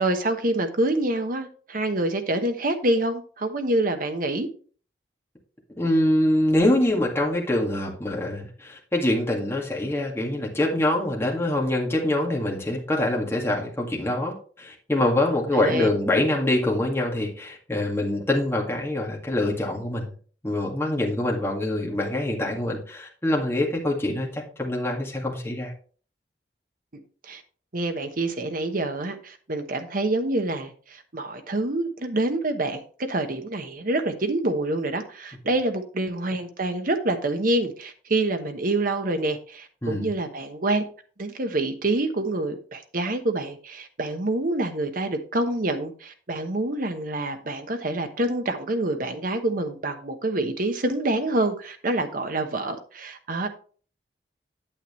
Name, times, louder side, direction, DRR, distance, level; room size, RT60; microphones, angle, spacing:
voice 1, 0.0-4.5 15.5-15.9 27.2-27.4 27.7-40.8 41.2-53.5, right 2 dB, 50° right, 1.1 m, -26 dB
voice 2, 5.8-20.1 20.4-25.7 39.8-40.1, left 1 dB, 15° left, 2.0 m, -25 dB
8.9 x 7.9 x 3.1 m
head